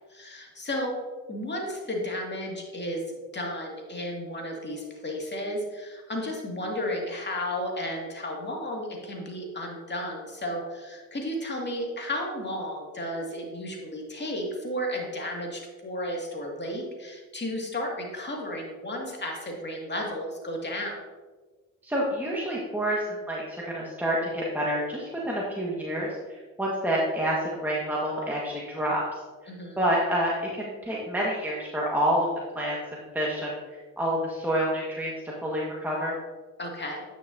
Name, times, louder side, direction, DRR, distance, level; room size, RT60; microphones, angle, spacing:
voice 1, 0.1-1.0 1.3-21.0 29.5-29.8 36.6-37.0, left 1 dB, 30° left, -1 dB, 2.2 m, -33 dB
voice 2, 21.8-26.1 26.6-29.2 29.8-32.3 32.5-32.8 33.1-35.1 35.4-36.1, equal, 5° right, -5 dB, 1.5 m, -28 dB
9.4 x 6.1 x 2.7 m, 1.3 s
supercardioid pair, 60°, 34 cm